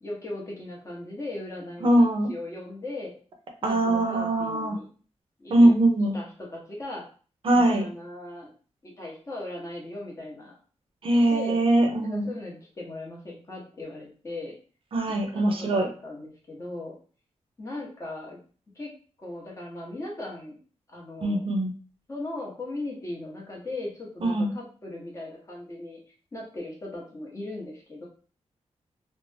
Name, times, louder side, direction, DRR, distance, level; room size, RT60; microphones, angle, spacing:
voice 1, 0.0-3.1 3.6-4.9 5.4-5.7 6.1-7.0 7.5-8.5 8.8-10.6 11.1-11.6 12.0-14.6 15.1-16.9 17.6-18.4 18.7-18.9 19.2-20.6 20.9-21.4 22.1-26.0 26.3-28.1, left 2 dB, 25° left, -3 dB, 0.9 m, -38 dB
voice 2, 1.8-2.3 3.6-4.8 5.5-6.2 7.4-7.9 11.0-12.3 14.9-15.9 21.2-21.7 24.2-24.5, right 1 dB, 50° right, 3 dB, 0.5 m, -22 dB
2.5 x 2.1 x 3.2 m, 0.40 s
wide cardioid pair, 180°, 12 cm